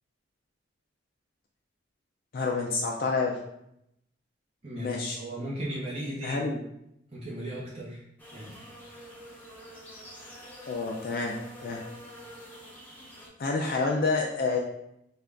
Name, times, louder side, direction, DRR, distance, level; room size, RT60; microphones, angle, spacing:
voice 1, 2.3-3.4 4.7-5.2 6.2-6.6 10.7-11.8 13.4-14.6, left 4 dB, 50° left, 0 dB, 0.4 m, -28 dB
voice 2, 4.6-6.5 7.1-8.0 8.3-8.6 8.9-9.1, right 1 dB, 30° right, -7 dB, 0.8 m, -36 dB
sound 1, 8.2-13.3, equal, 10° left, 0.7 m, -47 dB
3.8 x 2.4 x 3.3 m, 0.78 s
head